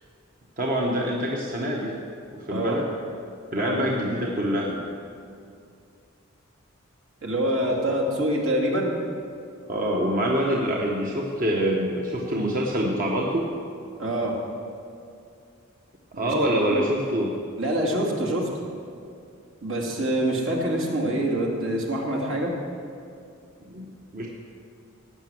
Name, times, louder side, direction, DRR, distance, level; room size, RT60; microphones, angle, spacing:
voice 1, 0.6-1.9 2.3-2.9 3.5-4.8 9.7-13.5 16.2-17.4 23.7-24.3, equal, 40° right, -2 dB, 1.2 m, -25 dB
voice 2, 7.2-9.0 14.0-14.3 16.1-16.3 16.7-16.8 17.6-18.5 19.6-22.5, right 1 dB, 70° right, -1 dB, 2.4 m, -25 dB
17.0 x 6.1 x 7.6 m, 2.4 s
head